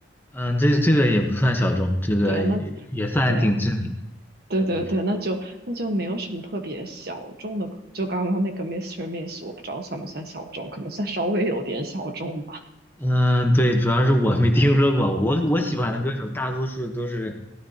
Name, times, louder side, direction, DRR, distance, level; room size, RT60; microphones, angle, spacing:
voice 1, 0.3-3.9 13.0-17.4, equal, 10° left, 3 dB, 1.0 m, -21 dB
voice 2, 2.2-2.6 3.3-3.6 4.5-7.7 7.9-12.6, right 1 dB, 50° right, 4 dB, 1.4 m, -28 dB
17.0 x 12.5 x 2.9 m, 0.96 s
head